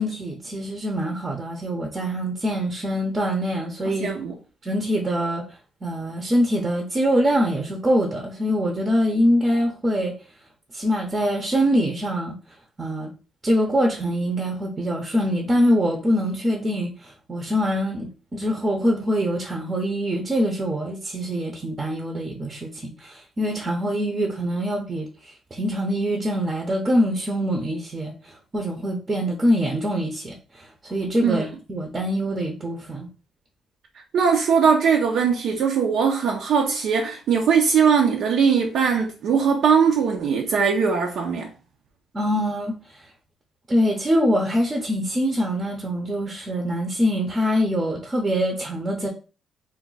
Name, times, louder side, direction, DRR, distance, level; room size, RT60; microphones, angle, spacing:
voice 1, 0.0-4.1 4.6-5.4 5.8-10.1 10.7-12.4 12.8-13.1 13.4-31.4 31.7-33.1 42.1-42.8 43.7-49.1, equal, 30° right, 0.6 m, -24 dB
voice 2, 4.0-4.3 31.2-31.4 34.1-41.5, right 6 dB, 70° right, 0.4 m, -20 dB
2.3 x 2.1 x 3.8 m
cardioid pair, 90°, 0 cm